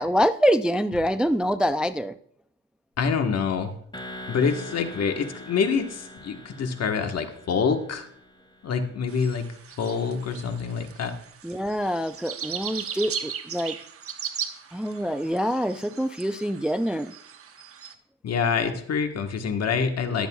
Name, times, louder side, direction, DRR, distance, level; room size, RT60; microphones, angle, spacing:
voice 1, 0.0-2.2 11.4-13.8 14.7-17.1, equal, 5° right, 12 dB, 0.3 m, -25 dB
voice 2, 3.0-3.7 4.3-8.1 8.6-9.5 9.8-11.1 18.2-20.3, left 6 dB, 55° left, 6 dB, 1.4 m, -26 dB
sound 1, 3.9-8.8, left 1 dB, 15° left, 2.1 m, -43 dB
sound 2, 9.1-17.9, right 8 dB, 50° right, 1.0 m, -38 dB
22.0 x 7.9 x 2.3 m, 0.66 s
cardioid pair, 90°, 30 cm